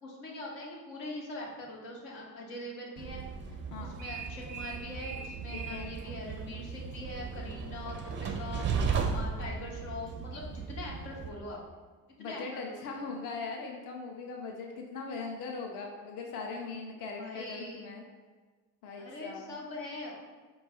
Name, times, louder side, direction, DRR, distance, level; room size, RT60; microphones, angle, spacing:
voice 1, 0.0-3.2 3.8-8.7 9.1-11.6 12.2-13.1 17.2-17.9 19.0-20.2, left 2 dB, 70° left, -3 dB, 1.0 m, -42 dB
Train, 3.0-11.3, right 5 dB, 25° right, 0.4 m, -36 dB
voice 2, 5.5-5.9 12.2-18.0 18.8-19.6, left 4 dB, 45° left, 1 dB, 0.6 m, -40 dB
4.5 x 2.3 x 4.1 m, 1.4 s
figure-of-eight pair, 45°, 48 cm